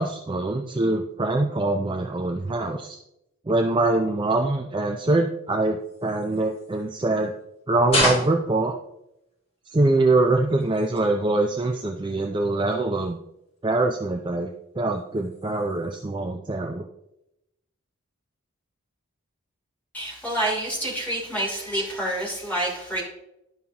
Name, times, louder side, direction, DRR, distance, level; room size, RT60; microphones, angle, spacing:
voice 1, 0.0-3.0 3.5-7.3 7.7-8.8 9.7-13.2 13.6-14.5 14.7-16.9, right 2 dB, 20° right, 3 dB, 0.4 m, -24 dB
sound 1, 5.8-7.4 7.8-9.4 9.9-11.2 11.6-12.0 12.3-12.4 12.7-13.1 13.6-13.7 14.1-14.6 14.9-16.0, left 1 dB, 25° left, 1.9 m, -32 dB
voice 2, 19.9-23.0, right 1 dB, 5° left, -5 dB, 2.9 m, -28 dB
12.0 x 5.5 x 2.9 m, 0.83 s
head